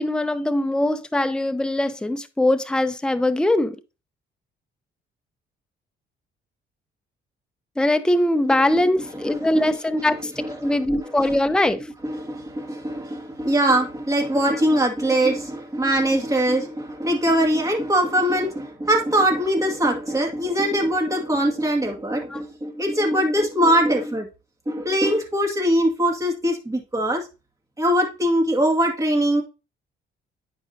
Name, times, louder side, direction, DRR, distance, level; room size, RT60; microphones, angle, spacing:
voice 1, 0.0-3.8 7.8-11.9 14.5-14.6 22.3-22.4, left 1 dB, 5° left, 0.6 m, -22 dB
voice 2, 9.3-9.8 10.4-10.7 12.0-24.3 24.7-27.2 27.8-29.4, right 1 dB, 15° right, 2.2 m, -22 dB
9.6 x 5.0 x 2.8 m
cardioid pair, 90°, 20 cm